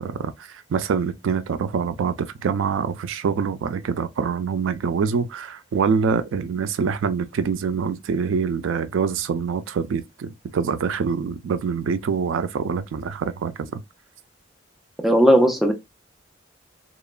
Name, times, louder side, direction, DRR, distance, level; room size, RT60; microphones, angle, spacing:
voice 1, 0.0-13.8, right 6 dB, 80° right, 0.3 m, -25 dB
voice 2, 15.0-15.7, equal, ahead, 0.4 m, -16 dB
2.9 x 2.1 x 2.3 m
head